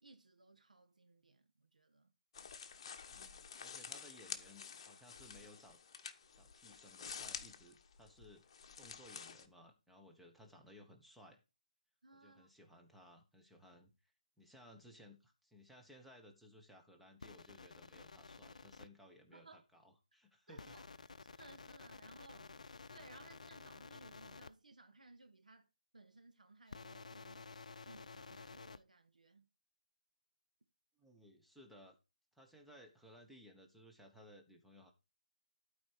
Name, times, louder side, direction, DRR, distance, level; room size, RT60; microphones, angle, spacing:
voice 1, 0.0-2.1 12.0-12.5 19.3-19.7 20.5-20.8 21.2-22.5 22.9-25.7 25.9-27.5 27.8-29.5, right 3 dB, 75° right, 1.5 m, -61 dB
sound 1, 2.3-9.5, left 6 dB, 40° left, 1.1 m, -50 dB
voice 2, 3.1-5.8 6.3-8.5 8.8-11.4 12.2-14.1 14.4-20.8 31.0-32.0 32.3-34.9, equal, ahead, 1.2 m, -60 dB
sound 2, 17.2-18.9 20.6-24.5 26.7-28.8, left 4 dB, 65° left, 0.6 m, -53 dB
12.0 x 4.9 x 4.6 m
figure-of-eight pair, 155°, 4 cm